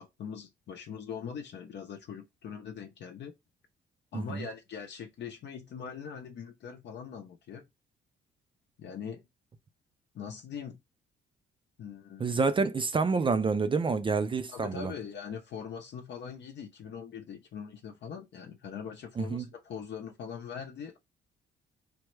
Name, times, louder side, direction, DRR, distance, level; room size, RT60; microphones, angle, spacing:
voice 1, 0.0-3.3 4.1-7.7 8.8-9.2 10.1-10.8 11.8-12.3 14.5-21.0, left 7 dB, 60° left, 0.6 m, -42 dB
voice 2, 4.1-4.5 12.2-14.9 19.2-19.4, right 4 dB, 25° right, 0.4 m, -28 dB
3.4 x 2.0 x 3.1 m
cardioid pair, 90°, 20 cm